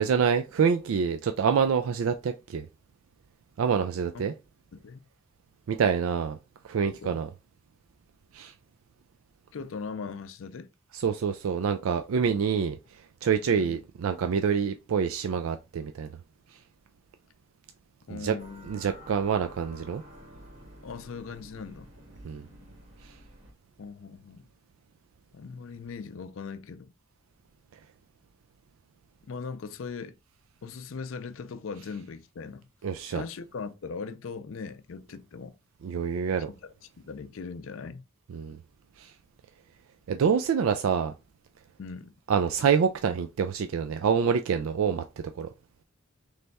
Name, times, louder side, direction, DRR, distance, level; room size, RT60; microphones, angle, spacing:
voice 1, 0.0-2.7 3.6-4.3 5.7-6.4 6.6-7.3 8.3-8.5 10.9-12.8 13.2-16.1 18.1-18.3 18.7-20.0 22.2-22.4 32.8-33.2 35.8-36.5 38.3-38.6 39.0-39.1 40.1-41.1 42.3-45.0 45.4-45.5, right 6 dB, 85° right, 0.4 m, -26 dB
voice 2, 4.7-5.1 6.8-7.2 9.5-10.7 13.4-13.8 18.1-18.7 20.8-21.9 23.8-24.5 25.3-26.9 29.3-30.1 30.6-32.7 33.1-35.6 36.5-38.0 41.8-42.1, left 5 dB, 75° left, 0.5 m, -40 dB
sound 1, 18.4-23.5, equal, 65° right, 2.0 m, -50 dB
3.4 x 3.3 x 4.0 m
head